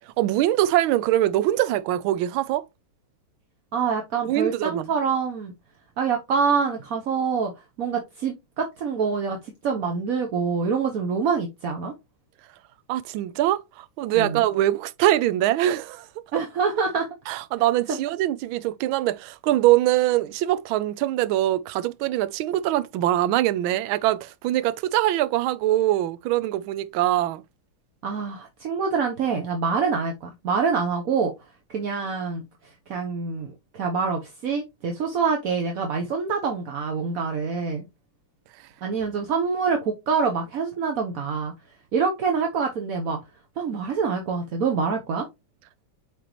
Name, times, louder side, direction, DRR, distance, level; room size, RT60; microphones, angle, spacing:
voice 1, 0.2-2.6 4.3-4.9 12.9-16.1 17.3-27.4, right 14 dB, 80° right, 1.4 m, -23 dB
voice 2, 3.7-5.5 6.0-7.5 7.8-11.9 14.1-14.4 16.3-17.1 17.9-18.0 28.0-31.3 31.7-37.9 38.8-41.5 41.9-43.2 43.6-45.3, right 5 dB, 55° right, 1.1 m, -26 dB
7.9 x 4.2 x 3.0 m
omnidirectional pair, 2.3 m